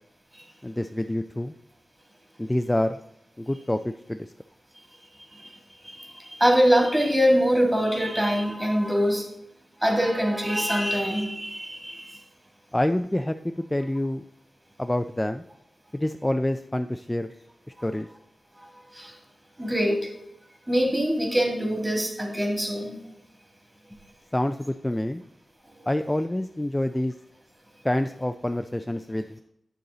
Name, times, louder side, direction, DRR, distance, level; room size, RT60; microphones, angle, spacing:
voice 1, 0.6-1.5 2.4-3.0 3.4-4.3 12.7-14.2 14.8-15.4 15.9-17.3 17.8-18.1 24.3-25.2 25.9-27.1 27.8-29.4, left 1 dB, 15° left, 8 dB, 0.3 m, -27 dB
voice 2, 5.9-9.2 9.8-12.1 19.0-19.1 19.6-20.1 20.7-23.0, equal, 15° right, 1 dB, 2.6 m, -23 dB
9.2 x 6.7 x 3.9 m, 0.77 s
cardioid pair, 60°, 0 cm